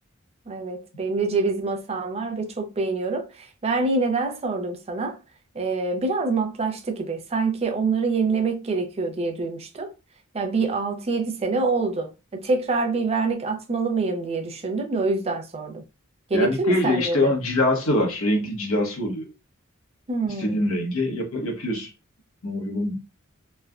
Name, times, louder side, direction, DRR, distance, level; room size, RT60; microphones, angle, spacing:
voice 1, 0.5-5.2 5.5-9.9 10.3-15.8 16.3-17.3 20.1-20.7, right 3 dB, 30° right, 0.5 m, -26 dB
voice 2, 16.3-19.3 20.2-21.9 22.4-23.0, left 1 dB, 75° left, 1.0 m, -24 dB
3.2 x 2.1 x 2.4 m
head